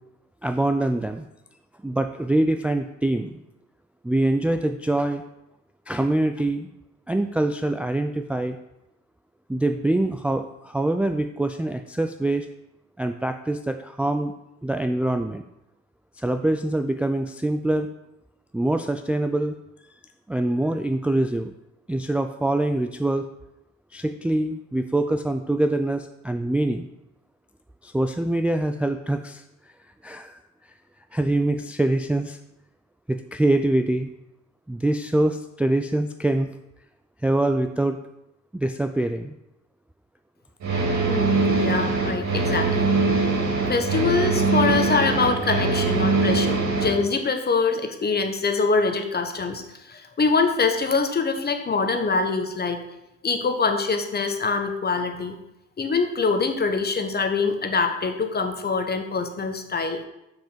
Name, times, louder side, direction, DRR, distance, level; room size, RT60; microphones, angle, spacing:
voice 1, 0.4-1.2 1.8-3.4 4.0-5.2 5.9-6.7 7.1-8.6 9.5-12.5 13.0-14.3 14.6-15.4 16.2-17.9 18.5-19.6 20.3-21.5 21.9-23.2 23.9-26.9 27.8-29.4 30.0-30.4 31.1-32.4 33.1-34.1 34.7-36.5 37.2-38.0 38.5-39.3, right 1 dB, 5° right, 6 dB, 0.4 m, -24 dB
sound 1, 40.6-47.0, right 3 dB, 65° right, 2.9 m, -22 dB
voice 2, 41.1-42.9 43.7-52.8 53.2-55.4 55.8-60.0, left 4 dB, 30° left, 6 dB, 1.1 m, -24 dB
5.8 x 5.2 x 6.7 m, 0.89 s
cardioid pair, 90°, 30 cm